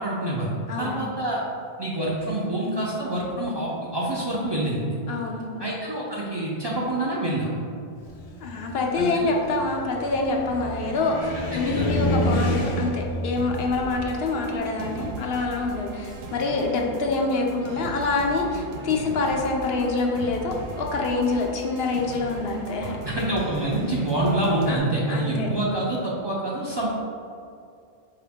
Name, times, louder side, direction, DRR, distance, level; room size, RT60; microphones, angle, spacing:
voice 1, 0.0-1.4 1.8-4.8 5.6-7.5 9.0-9.3 11.6-11.9 23.0-26.9, right 1 dB, 35° right, -6 dB, 0.5 m, -26 dB
voice 2, 0.7-1.1 5.1-5.6 8.4-23.0 24.7-25.5, left 3 dB, 75° left, 1 dB, 0.8 m, -26 dB
Car, 8.0-16.2, left 1 dB, 50° left, 0.5 m, -30 dB
sound 1, 13.4-24.8, right 2 dB, 80° right, 0.8 m, -38 dB
4.8 x 2.8 x 3.5 m, 2.4 s
omnidirectional pair, 1.0 m